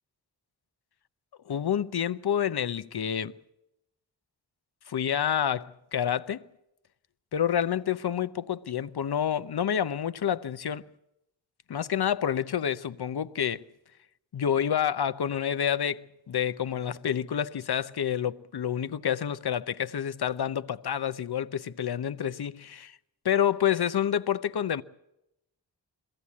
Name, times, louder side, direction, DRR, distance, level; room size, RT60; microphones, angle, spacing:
voice 1, 1.5-3.3 4.9-6.4 7.3-10.9 11.7-13.6 14.3-23.0 23.2-24.8, left 9 dB, 60° left, 0.8 m, -28 dB
22.0 x 16.0 x 8.5 m
cardioid pair, 45°, 44 cm